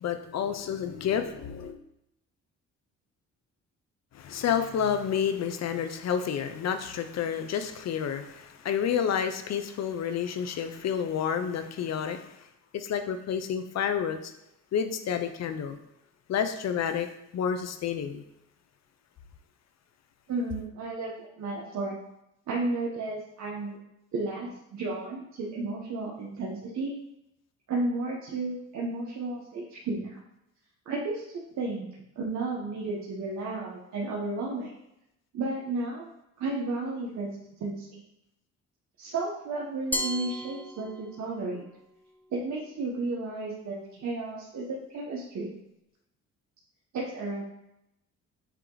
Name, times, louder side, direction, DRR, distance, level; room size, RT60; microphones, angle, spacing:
voice 1, 0.0-1.8 4.1-12.4 12.7-14.3 14.7-15.8 16.3-17.1 17.3-18.2, left 8 dB, 60° left, 8 dB, 0.7 m, -30 dB
voice 2, 20.3-22.0 22.5-23.8 24.1-26.9 27.7-30.2 30.9-31.2 31.5-31.9 32.2-34.7 35.3-36.1 36.4-38.0 39.0-41.6 42.3-45.5 46.9-47.5, right 2 dB, 65° right, -4 dB, 1.2 m, -33 dB
Glass, 39.9-41.4, left 1 dB, 5° left, 0.3 m, -34 dB
8.1 x 3.0 x 3.9 m, 0.84 s
cardioid pair, 90°, 30 cm